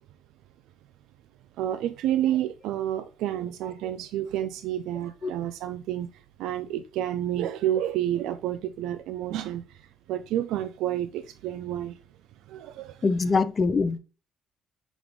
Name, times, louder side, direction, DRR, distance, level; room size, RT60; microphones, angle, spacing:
voice 1, 1.6-6.1 6.4-12.0 12.5-13.0, right 12 dB, 80° right, 0.3 m, -30 dB
voice 2, 13.0-14.0, left 4 dB, 40° left, 0.5 m, -23 dB
6.1 x 2.3 x 3.4 m
supercardioid pair, 70°, 0 cm